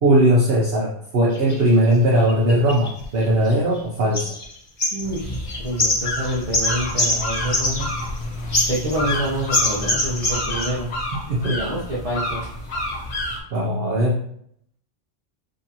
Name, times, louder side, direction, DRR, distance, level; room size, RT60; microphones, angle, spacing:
voice 1, 0.0-4.3 11.3-11.6 13.5-14.2, right 1 dB, 60° right, -3 dB, 1.0 m, -19 dB
sound 1, 1.3-1.6 2.3-3.8 4.1-4.5 4.8-8.2 8.5-9.2 9.5-10.7, left 1 dB, 35° left, 0.8 m, -24 dB
voice 2, 4.9-7.9 8.6-10.9 11.5-12.4, right 1 dB, 35° right, -7 dB, 0.9 m, -27 dB
sound 2, 5.0-13.4, left 1 dB, 65° left, 1.4 m, -29 dB
6.4 x 2.8 x 2.9 m, 0.69 s
omnidirectional pair, 1.2 m